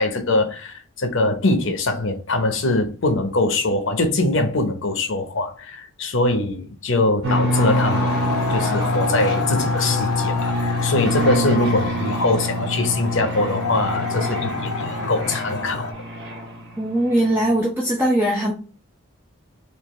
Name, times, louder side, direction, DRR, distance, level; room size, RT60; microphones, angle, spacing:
voice 1, 0.0-15.9, left 2 dB, 55° left, 0.8 m, -22 dB
sound 1, 7.2-16.8, equal, 55° right, 1.3 m, -25 dB
sound 2, 7.5-15.9, left 4 dB, 85° left, 0.8 m, -28 dB
voice 2, 16.8-18.5, right 1 dB, 10° right, 0.6 m, -20 dB
4.5 x 2.6 x 3.1 m
head